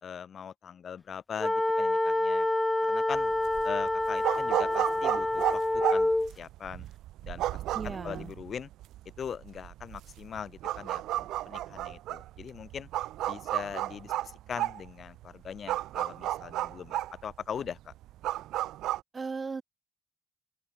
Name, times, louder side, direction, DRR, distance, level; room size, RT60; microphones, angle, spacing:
voice 1, 0.0-2.5 2.9-3.3 3.6-5.6 5.9-6.9 7.2-8.7 9.2-12.9 13.3-17.9, left 7 dB, 55° left, 1.7 m, -41 dB
sound 1, 1.4-6.3, left 2 dB, 10° left, 1.6 m, -27 dB
sound 2, 3.1-19.0, right 14 dB, 90° right, 0.7 m, -33 dB
voice 2, 7.7-8.3 19.1-19.6, right 4 dB, 35° right, 3.0 m, -36 dB
open air
cardioid pair, 90°, 0 cm